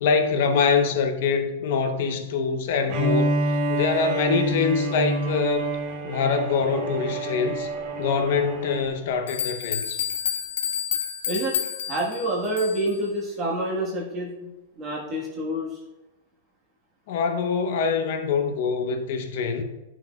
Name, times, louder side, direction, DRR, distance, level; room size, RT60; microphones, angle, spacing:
voice 1, 0.0-5.7 6.0-7.7 8.0-10.0 17.1-19.6, left 5 dB, 50° left, 6 dB, 0.8 m, -24 dB
Bowed string instrument, 2.9-8.9, right 1 dB, 40° right, 1.1 m, -27 dB
sound 1, 8.8-8.9 9.3-13.0, left 9 dB, 80° left, 0.9 m, -29 dB
voice 2, 11.9-14.5 14.8-15.7, right 1 dB, 25° right, -4 dB, 1.3 m, -27 dB
11.0 x 6.1 x 2.3 m, 1.0 s
supercardioid pair, 170°, 0 cm